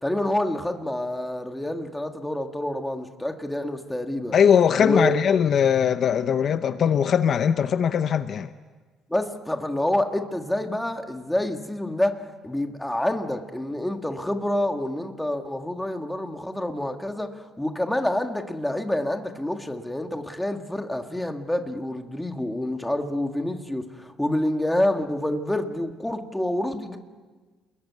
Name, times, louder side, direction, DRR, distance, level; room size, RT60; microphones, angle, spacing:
voice 1, 0.0-4.4 4.8-5.2 9.1-27.0, left 1 dB, 5° left, 1.7 m, -27 dB
voice 2, 4.3-8.5, left 8 dB, 45° left, 0.8 m, -20 dB
29.5 x 21.5 x 9.4 m
cardioid pair, 160°, 0 cm